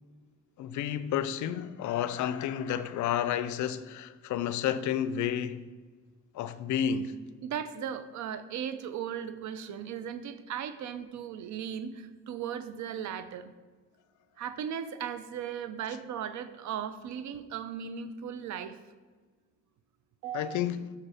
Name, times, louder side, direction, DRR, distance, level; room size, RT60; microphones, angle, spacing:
voice 1, 0.6-5.7 6.3-7.2 20.3-20.9, left 9 dB, 75° left, 0.5 m, -31 dB
voice 2, 7.4-13.5 14.4-18.8 20.2-20.6, right 8 dB, 70° right, 0.6 m, -37 dB
8.1 x 5.9 x 3.4 m
cardioid pair, 90°, 30 cm